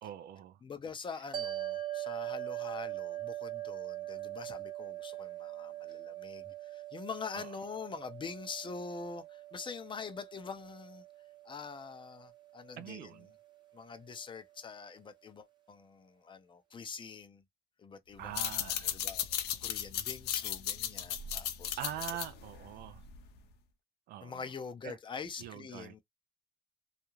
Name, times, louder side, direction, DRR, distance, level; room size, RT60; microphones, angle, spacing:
voice 1, 0.0-0.6 7.3-7.5 12.8-13.3 18.2-19.0 21.8-23.0 24.1-24.5 24.8-25.0 25.4-25.9, right 12 dB, 70° right, 0.4 m, -43 dB
voice 2, 0.6-11.0 11.4-13.2 13.7-17.4 17.8-19.3 19.6-21.8 24.2-26.0, left 5 dB, 30° left, 0.5 m, -44 dB
sound 1, 1.3-13.8, right 14 dB, 25° right, 0.9 m, -42 dB
sound 2, 18.2-23.4, left 10 dB, 75° left, 0.6 m, -36 dB
2.4 x 2.0 x 3.0 m
cardioid pair, 110°, 17 cm